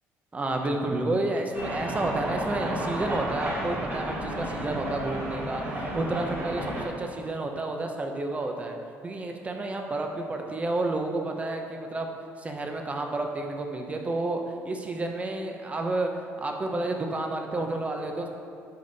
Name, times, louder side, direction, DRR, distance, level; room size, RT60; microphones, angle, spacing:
voice 1, 0.3-8.8 9.0-12.1 12.4-18.3, right 2 dB, 25° right, 3 dB, 1.0 m, -30 dB
sound 1, 1.5-6.8, right 1 dB, 40° right, 2.1 m, -32 dB
10.5 x 5.1 x 4.2 m, 2.5 s
cardioid pair, 105°, 6 cm